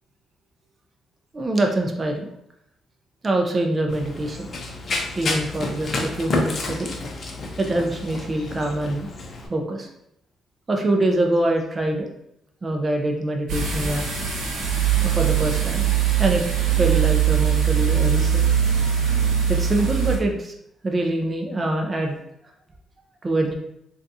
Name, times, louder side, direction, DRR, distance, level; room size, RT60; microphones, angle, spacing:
voice 1, 1.3-2.3 3.2-4.5 5.2-6.9 7.6-9.1 9.5-9.9 10.7-12.1 12.6-14.0 15.0-15.9 16.2-16.4 16.8-18.4 19.5-20.5 20.8-22.2 23.2-23.5, right 1 dB, 30° right, 2 dB, 0.5 m, -24 dB
Run, 3.9-9.5, left 3 dB, 45° left, 0.6 m, -30 dB
sound 1, 13.5-20.2, right 9 dB, 80° right, 1.0 m, -21 dB
3.7 x 2.4 x 2.7 m, 0.77 s
cardioid pair, 90°, 0 cm